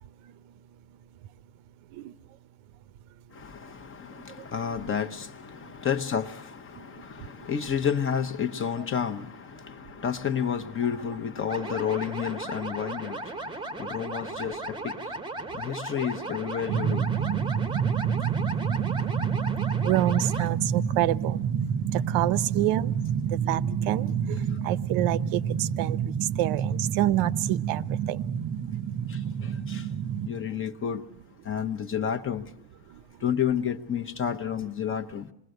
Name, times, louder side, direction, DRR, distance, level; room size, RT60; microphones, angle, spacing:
voice 1, 3.4-13.2 13.8-14.8 15.6-17.0 29.7-29.8 30.3-31.0 31.5-32.4 33.2-35.2, left 8 dB, 25° left, 0.9 m, -30 dB
sound 1, 11.5-20.5, right 2 dB, 10° right, 0.9 m, -36 dB
sound 2, 16.7-30.3, right 7 dB, 40° right, 0.9 m, -28 dB
voice 2, 19.8-21.4 21.9-22.9 23.3-24.4 24.6-27.8 28.1-28.2, right 14 dB, 75° right, 0.9 m, -27 dB
27.5 x 21.0 x 7.9 m
cardioid pair, 170°, 50 cm